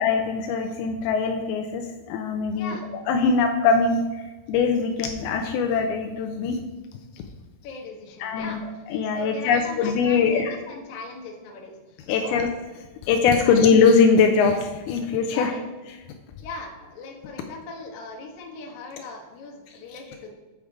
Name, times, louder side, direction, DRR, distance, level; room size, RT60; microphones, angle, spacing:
voice 1, 0.0-2.8 3.1-4.0 4.5-6.6 7.2-7.3 8.2-8.6 8.9-10.6 12.1-12.5 13.0-15.5 19.9-20.0, left 5 dB, 90° left, 4 dB, 2.2 m, -21 dB
voice 2, 2.5-2.9 7.6-8.6 9.1-12.4 13.4-13.6 15.3-15.7 16.4-20.3, left 3 dB, 65° left, 0 dB, 1.9 m, -39 dB
8.6 x 5.0 x 4.7 m, 1.2 s
omnidirectional pair, 5.0 m